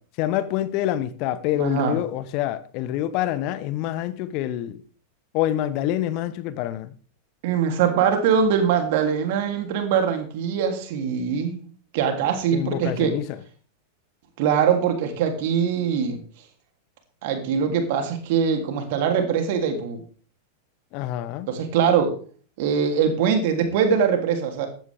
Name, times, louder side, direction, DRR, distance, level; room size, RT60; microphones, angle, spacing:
voice 1, 0.2-4.8 5.3-6.9 12.5-13.4 20.9-21.5, left 13 dB, 45° left, 1.0 m, -26 dB
voice 2, 1.6-2.0 7.4-11.7 11.9-13.1 14.4-16.2 17.2-20.0 21.5-22.1 22.6-24.7, right 7 dB, 50° right, 3.1 m, -22 dB
15.0 x 12.0 x 3.6 m
figure-of-eight pair, 90°, 0 cm